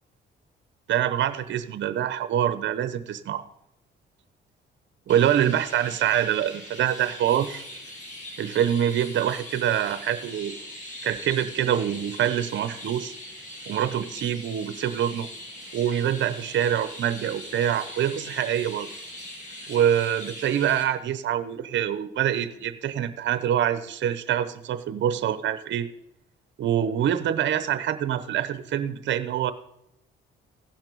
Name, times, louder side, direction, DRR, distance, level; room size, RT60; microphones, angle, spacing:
voice 1, 0.9-3.4 5.1-7.6 8.4-10.6 11.0-13.1 13.7-15.3 15.7-18.9 19.7-25.9 26.6-29.5, right 10 dB, 70° right, 12 dB, 0.8 m, -25 dB
Chirp tweet, 5.1-20.8, left 1 dB, 40° left, 4.8 m, -41 dB
15.5 x 5.9 x 5.4 m, 0.83 s
cardioid pair, 90°, 20 cm